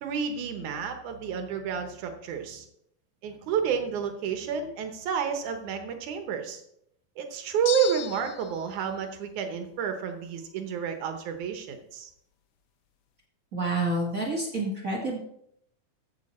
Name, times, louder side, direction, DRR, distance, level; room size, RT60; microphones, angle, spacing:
voice 1, 0.0-2.7 3.2-6.6 7.2-12.1, right 7 dB, 70° right, 6 dB, 2.3 m, -30 dB
sound 1, 7.7-8.6, left 11 dB, 85° left, 1.5 m, -35 dB
voice 2, 13.5-15.2, right 2 dB, 35° right, 0 dB, 1.4 m, -28 dB
14.5 x 7.5 x 4.3 m, 0.74 s
omnidirectional pair, 4.0 m